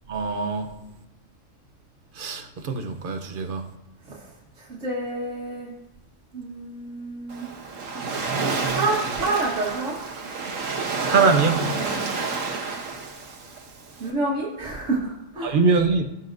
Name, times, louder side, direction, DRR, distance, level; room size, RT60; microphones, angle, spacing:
voice 1, 0.1-0.7 2.2-3.6 8.5-8.8 11.0-11.6 15.4-16.0, right 4 dB, 45° right, 6 dB, 0.9 m, -23 dB
voice 2, 4.6-5.7 6.3-7.5 8.7-10.0 11.8-12.1 14.0-15.5, right 2 dB, 70° right, -5 dB, 1.8 m, -28 dB
Waves surf, 7.3-14.1, right 4 dB, 90° right, 1.5 m, -29 dB
16.5 x 5.7 x 2.7 m, 0.86 s
omnidirectional pair, 1.3 m